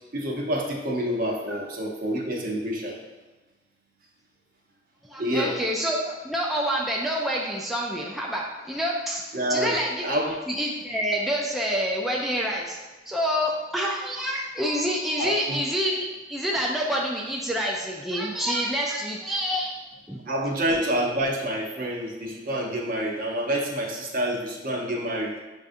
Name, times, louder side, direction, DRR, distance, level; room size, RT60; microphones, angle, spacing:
voice 1, 0.1-3.0 5.2-5.5 9.3-10.4 15.2-15.6 20.3-25.4, right 1 dB, 50° right, -1 dB, 0.7 m, -28 dB
voice 2, 5.0-10.1 10.5-12.8 13.1-19.7 20.1-20.2, equal, ahead, -3 dB, 0.3 m, -27 dB
6.5 x 2.4 x 2.5 m, 1.2 s
head